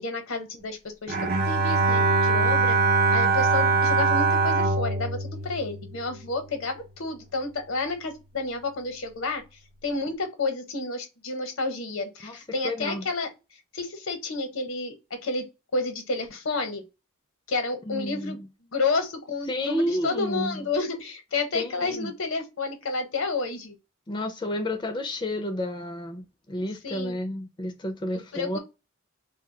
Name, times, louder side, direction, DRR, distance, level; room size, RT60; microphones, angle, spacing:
voice 1, 0.0-2.8 3.1-9.4 9.8-13.3 13.7-15.4 15.7-16.8 17.5-18.4 18.7-23.8 26.8-27.2 28.1-28.6, left 3 dB, 80° left, 0.8 m, -30 dB
Bowed string instrument, 1.1-6.4, right 3 dB, 45° right, 0.5 m, -23 dB
voice 2, 12.6-13.0 17.9-18.5 19.5-20.7 21.5-22.1 24.1-28.6, left 1 dB, 20° left, 0.4 m, -31 dB
2.3 x 2.1 x 3.7 m
head